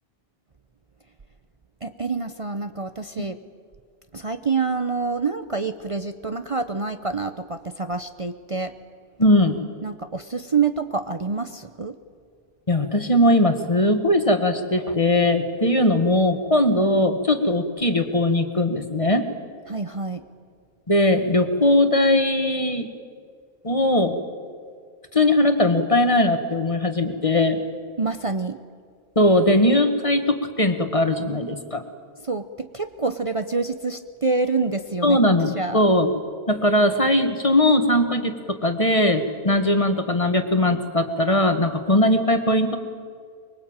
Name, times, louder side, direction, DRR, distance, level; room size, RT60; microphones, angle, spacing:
voice 1, 1.8-3.4 4.1-8.8 9.8-12.0 19.7-20.2 28.0-28.6 32.2-35.2 35.5-35.8, right 4 dB, 35° right, 9 dB, 0.9 m, -27 dB
voice 2, 9.2-9.6 12.7-19.3 20.9-22.9 23.6-24.2 25.1-27.6 29.2-31.8 35.0-36.1 36.5-42.8, left 1 dB, 30° left, 8 dB, 1.7 m, -20 dB
24.5 x 22.5 x 8.9 m, 2.1 s
omnidirectional pair, 1.1 m